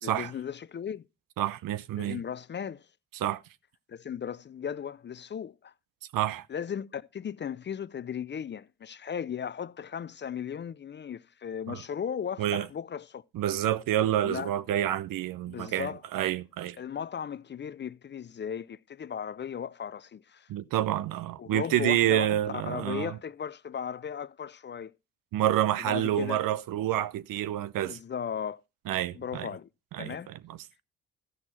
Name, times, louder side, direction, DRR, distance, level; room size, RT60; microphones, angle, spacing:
voice 1, 0.0-1.1 2.0-2.9 3.9-5.7 6.5-13.2 14.2-14.5 15.5-16.0 16.8-20.5 21.4-24.9 25.8-26.4 27.8-28.6 29.1-29.7 30.0-30.3, left 8 dB, 30° left, 0.4 m, -36 dB
voice 2, 1.4-2.2 3.1-3.4 6.1-6.5 11.7-11.8 12.4-12.7 13.3-16.8 20.5-23.2 25.3-28.0 28.9-29.5 29.9-30.6, right 12 dB, 70° right, 0.7 m, -28 dB
13.5 x 6.2 x 4.2 m
supercardioid pair, 55°, 35 cm